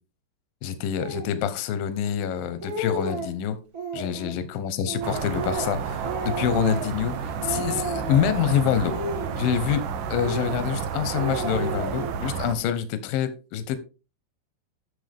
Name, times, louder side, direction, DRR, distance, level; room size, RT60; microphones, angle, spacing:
voice 1, 0.6-3.6 3.9-9.0 9.4-9.8 10.1-13.8, left 9 dB, 70° left, 12 dB, 2.3 m, -26 dB
Speech, 1.0-1.3 2.0-2.1 2.4-3.3 3.7-4.3 4.9-7.1 7.4-8.4 8.8-9.8 10.1-10.8 11.1-12.3, right 2 dB, 35° right, 1.7 m, -33 dB
sound 1, 5.0-12.6, right 7 dB, 85° right, 1.8 m, -31 dB
12.0 x 7.1 x 3.6 m, 0.32 s
omnidirectional pair, 5.2 m